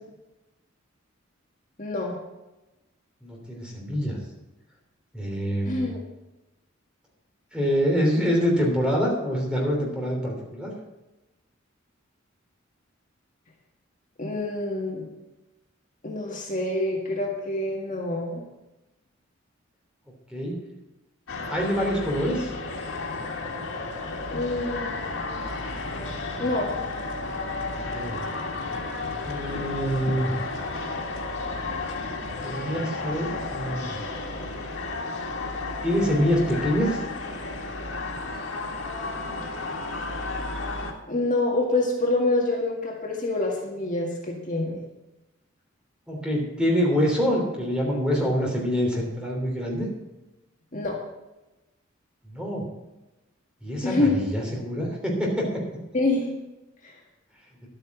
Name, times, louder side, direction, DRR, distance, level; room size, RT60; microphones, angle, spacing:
voice 1, 1.8-2.2 5.6-6.0 14.2-15.0 16.0-18.4 24.3-25.4 26.4-26.7 41.1-44.8 50.7-51.0 53.8-54.1 55.9-56.4 56.8-56.9, left 2 dB, 40° left, -1 dB, 1.8 m, -26 dB
voice 2, 3.2-4.2 5.1-5.8 7.5-10.7 20.3-20.6 21.5-22.5 27.8-28.2 29.2-30.3 32.4-34.0 35.8-37.0 46.1-49.9 52.3-52.7 53.6-55.6, equal, 5° right, -2 dB, 3.1 m, -25 dB
sound 1, 21.3-40.9, left 3 dB, 90° left, 1.8 m, -32 dB
11.5 x 8.9 x 6.1 m, 1.0 s
head